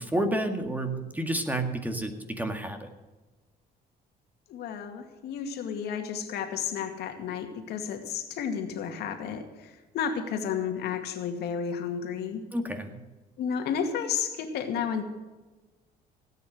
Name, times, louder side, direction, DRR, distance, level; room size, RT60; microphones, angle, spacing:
voice 1, 0.0-2.9 12.5-13.0, right 1 dB, 10° right, 6 dB, 1.8 m, -30 dB
voice 2, 4.5-12.4 13.4-15.0, left 7 dB, 75° left, 5 dB, 2.2 m, -32 dB
17.5 x 9.1 x 6.5 m, 1.2 s
cardioid pair, 110°, 17 cm